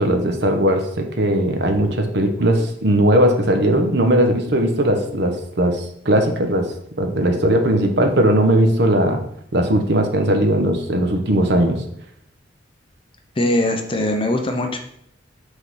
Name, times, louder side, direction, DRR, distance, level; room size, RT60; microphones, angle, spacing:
voice 1, 0.0-6.7 7.0-9.2 9.5-11.8, right 1 dB, 60° right, 5 dB, 1.0 m, -18 dB
voice 2, 13.4-14.8, left 1 dB, 30° left, 4 dB, 0.7 m, -21 dB
6.0 x 3.8 x 5.6 m, 0.71 s
head